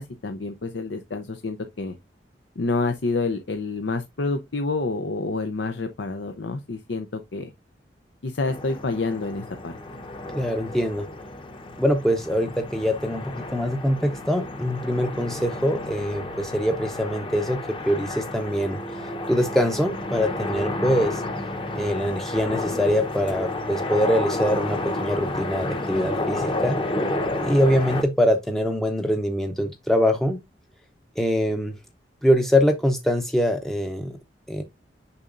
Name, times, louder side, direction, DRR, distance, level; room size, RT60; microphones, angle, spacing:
voice 1, 0.0-1.9 2.6-7.5 8.2-9.7, left 3 dB, 85° left, 0.7 m, -28 dB
sound 1, 8.4-28.0, left 2 dB, 30° left, 0.9 m, -31 dB
voice 2, 10.3-11.0 11.8-17.6 17.9-21.2 21.8-26.8 27.4-30.4 31.2-31.7 32.2-34.2 34.5-34.6, equal, ahead, 0.6 m, -23 dB
6.9 x 5.6 x 2.5 m
head